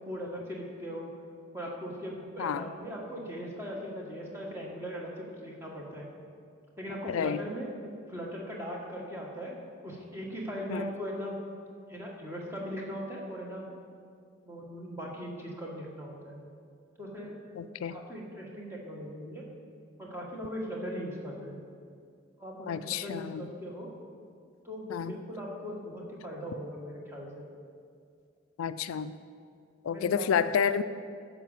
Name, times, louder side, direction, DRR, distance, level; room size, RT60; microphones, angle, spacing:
voice 1, 0.1-1.1 1.5-6.1 6.8-7.7 8.1-9.6 9.8-11.4 11.9-13.7 14.4-16.4 17.0-17.4 17.9-19.4 20.0-21.6 22.4-23.9 24.6-27.5 29.9-30.3, equal, 10° right, -3 dB, 1.4 m, -39 dB
voice 2, 7.1-7.4 10.7-10.9 17.6-18.0 22.7-23.5 24.9-25.2 28.6-29.1 29.8-30.8, left 7 dB, 85° left, 12 dB, 0.3 m, -30 dB
10.5 x 5.1 x 7.2 m, 2.2 s
head